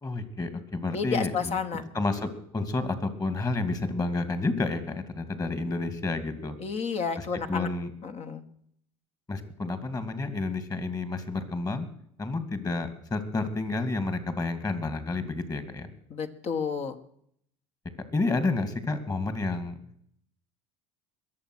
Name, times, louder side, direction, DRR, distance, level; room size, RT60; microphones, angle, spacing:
voice 1, 0.0-1.6 1.9-6.5 7.2-7.9 9.3-11.9 12.2-15.9 18.1-19.8, left 3 dB, 25° left, 12 dB, 2.5 m, -30 dB
voice 2, 0.9-1.8 6.6-7.7 8.0-8.4 16.1-17.0, left 6 dB, 45° left, 7 dB, 1.8 m, -31 dB
21.5 x 7.4 x 6.4 m, 0.67 s
hypercardioid pair, 85°, 15 cm